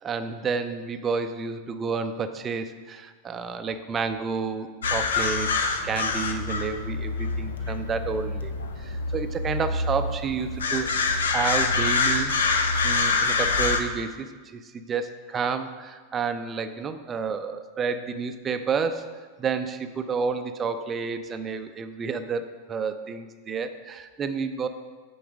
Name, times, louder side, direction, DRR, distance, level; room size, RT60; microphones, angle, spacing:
voice 1, 0.0-12.3 12.8-24.7, right 5 dB, 20° right, 8 dB, 0.4 m, -30 dB
sound 1, 4.8-13.8, left 4 dB, 65° left, 0.6 m, -26 dB
9.1 x 3.9 x 5.0 m, 1.4 s
figure-of-eight pair, 90°, 0 cm